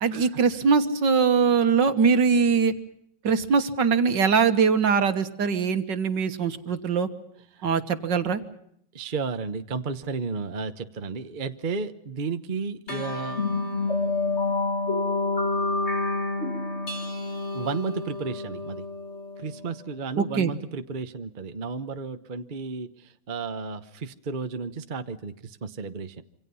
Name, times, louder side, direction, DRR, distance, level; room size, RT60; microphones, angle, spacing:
voice 1, 0.0-2.7 3.2-7.1 7.6-8.4 20.2-20.5, right 5 dB, 65° right, 9 dB, 2.0 m, -22 dB
voice 2, 8.9-13.5 17.5-18.8 19.4-26.2, right 5 dB, 35° right, 9 dB, 0.9 m, -33 dB
sound 1, 12.9-19.7, left 3 dB, 35° left, 2.1 m, -28 dB
27.0 x 25.5 x 5.6 m, 0.71 s
omnidirectional pair, 2.2 m